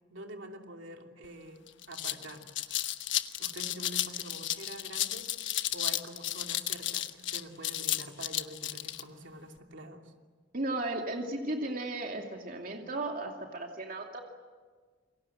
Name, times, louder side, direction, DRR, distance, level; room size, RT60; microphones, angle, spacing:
voice 1, 0.1-2.9 3.4-5.3 5.7-10.1, right 1 dB, 80° right, 3 dB, 2.8 m, -46 dB
sound 1, 1.2-1.3 1.7-9.0, left 13 dB, 75° left, 1.1 m, -33 dB
voice 2, 10.5-14.2, right 2 dB, 50° right, 2 dB, 2.6 m, -35 dB
28.5 x 23.0 x 7.9 m, 1.5 s
head